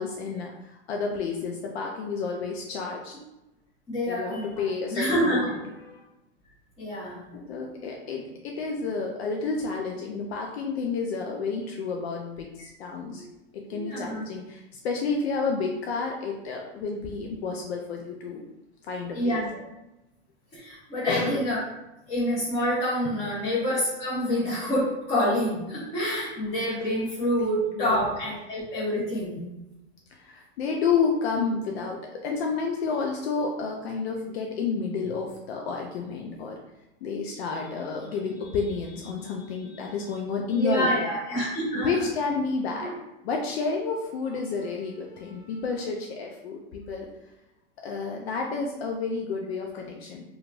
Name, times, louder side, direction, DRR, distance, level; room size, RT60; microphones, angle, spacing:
voice 1, 0.0-3.1 4.1-5.5 5.8-6.0 7.3-13.2 13.5-18.4 18.8-19.4 21.1-21.5 23.0-23.1 27.8-28.0 30.1-36.6 37.0-41.1 41.7-42.9 43.2-47.1 47.8-50.2, left 4 dB, 75° left, 1 dB, 0.5 m, -30 dB
voice 2, 3.9-4.5 4.9-5.5 6.8-7.3 12.6-12.7 13.1-13.3 13.7-14.2 19.1-19.5 20.5-21.6 22.1-29.4 40.5-42.0 42.8-42.9, equal, 20° left, -12 dB, 1.1 m, -27 dB
2.8 x 2.4 x 2.4 m, 0.96 s
hypercardioid pair, 125°, 31 cm